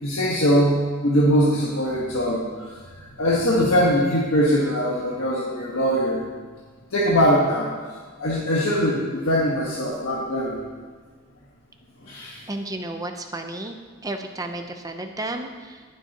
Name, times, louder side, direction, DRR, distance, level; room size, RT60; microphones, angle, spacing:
voice 1, 0.0-2.4 3.0-6.2 6.9-7.7 8.2-10.6 12.0-12.4, equal, 90° left, -5 dB, 1.5 m, -21 dB
voice 2, 12.5-13.8 14.0-15.8, right 2 dB, 20° right, 4 dB, 0.8 m, -32 dB
18.5 x 7.3 x 3.0 m, 1.5 s
head